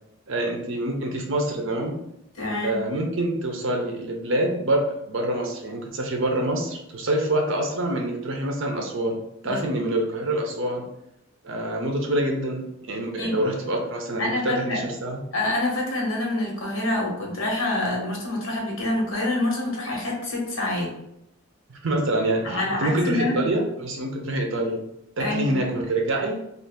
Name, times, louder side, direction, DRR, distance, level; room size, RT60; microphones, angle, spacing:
voice 1, 0.3-2.0 2.6-9.2 9.4-10.9 11.4-15.2 21.7-24.8 25.2-26.4, right 1 dB, 70° right, 2 dB, 0.7 m, -26 dB
voice 2, 2.4-2.8 9.4-9.9 13.2-13.4 14.2-14.8 15.3-20.9 22.4-23.4 25.2-25.6, left 2 dB, 70° left, -2 dB, 1.1 m, -26 dB
2.8 x 2.4 x 3.5 m, 0.81 s
head